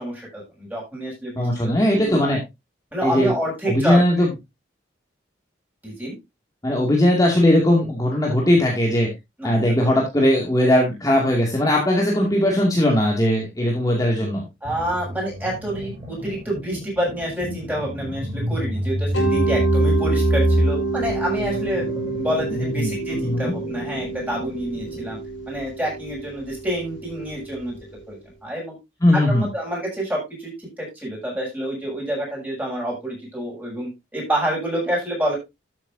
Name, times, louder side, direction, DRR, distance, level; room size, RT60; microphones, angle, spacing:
voice 1, 0.0-1.7 2.0-2.4 2.9-4.3 5.8-6.2 9.4-9.6 9.8-9.9 14.6-25.2 25.5-27.7 28.1-28.8 29.3-35.4, right 1 dB, 10° right, -3 dB, 7.5 m, -28 dB
voice 2, 1.4-2.4 3.0-3.3 3.6-4.3 6.6-9.1 9.4-14.4 22.5-23.6 29.0-29.5, left 1 dB, 20° left, -1 dB, 2.3 m, -19 dB
sound 1, 14.6-25.1, equal, 25° right, 5.3 m, -27 dB
Mallet percussion, 19.1-27.9, right 3 dB, 85° left, 5.5 m, -28 dB
13.0 x 9.0 x 2.7 m, 0.22 s
head